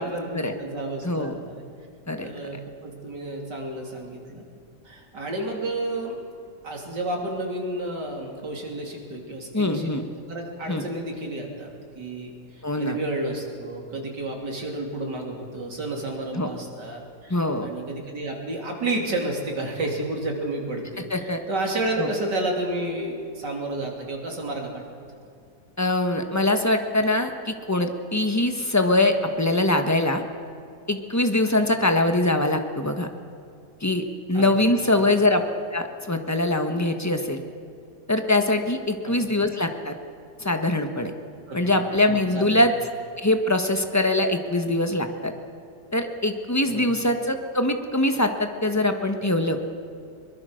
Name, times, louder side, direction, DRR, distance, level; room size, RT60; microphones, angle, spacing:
voice 1, 0.0-1.6 2.2-4.5 4.9-6.2 6.6-9.9 10.2-11.7 12.0-12.3 12.8-24.8 34.3-35.1 39.0-39.1 41.5-41.6 42.3-42.6 46.7-46.9, right 2 dB, 85° right, 0 dB, 3.7 m, -31 dB
voice 2, 1.0-1.4 2.1-2.6 9.5-10.0 10.6-10.8 12.6-13.0 16.3-16.5 17.3-17.7 21.1-21.4 22.0-22.1 25.8-30.2 30.9-33.1 33.8-35.4 35.7-37.4 38.1-39.9 40.4-41.1 41.5-42.7 43.2-45.3 45.9-49.6, left 1 dB, 10° left, 6 dB, 1.2 m, -23 dB
22.5 x 21.5 x 6.5 m, 2.4 s
omnidirectional pair, 1.8 m